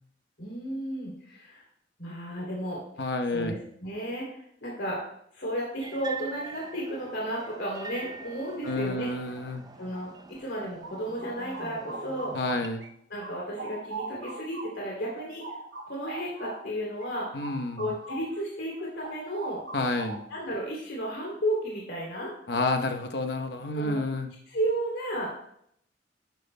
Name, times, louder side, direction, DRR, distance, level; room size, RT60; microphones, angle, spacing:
voice 1, 0.4-1.6 2.0-5.0 5.3-9.1 9.8-10.1 10.4-12.3 13.1-15.4 15.8-17.3 17.8-19.6 20.3-22.3 23.7-24.0 24.5-25.3, right 1 dB, 85° left, -3 dB, 2.9 m, -33 dB
voice 2, 3.0-3.5 8.6-9.6 12.3-12.8 17.3-17.9 19.7-20.2 22.5-24.3, left 2 dB, 70° left, 6 dB, 0.9 m, -29 dB
sound 1, 5.8-12.7, right 4 dB, 25° right, 0.4 m, -44 dB
sound 2, 10.3-12.9 13.2-18.4 18.7-20.5, right 2 dB, 75° right, 1.1 m, -41 dB
12.0 x 9.2 x 2.2 m, 0.70 s
head